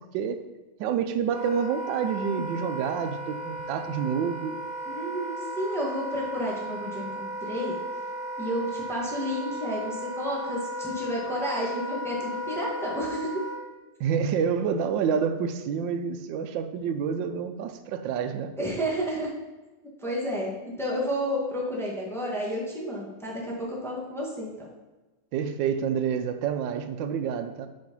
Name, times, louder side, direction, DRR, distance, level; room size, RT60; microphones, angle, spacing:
voice 1, 0.8-4.6 14.0-18.5 25.3-27.7, right 7 dB, 85° right, 9 dB, 1.3 m, -28 dB
Wind instrument woodwind instrument, 1.3-13.6, equal, 35° left, 1.3 m, -35 dB
voice 2, 4.9-7.7 8.4-13.4 18.6-19.3 20.0-24.7, equal, ahead, -4 dB, 1.3 m, -31 dB
5.5 x 4.9 x 5.2 m, 1.2 s
omnidirectional pair, 2.0 m